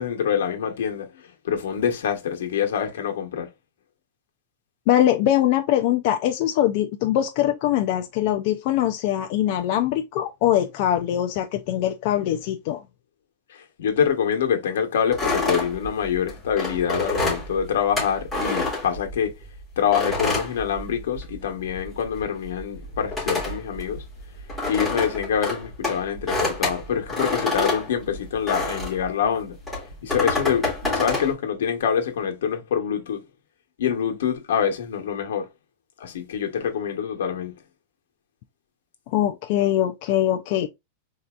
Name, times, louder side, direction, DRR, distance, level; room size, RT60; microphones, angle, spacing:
voice 1, 0.0-3.5 13.5-19.3 19.8-24.0 24.7-29.6 30.0-33.2 33.8-35.5 36.0-37.5, left 8 dB, 80° left, 1.0 m, -25 dB
voice 2, 4.9-12.8 39.1-40.7, left 12 dB, 40° left, 0.3 m, -22 dB
sound 1, 15.1-19.4 19.9-21.4 21.7-29.1 29.6-31.3, left 2 dB, ahead, 2.2 m, -27 dB
4.3 x 2.7 x 2.3 m
supercardioid pair, 175°, 0 cm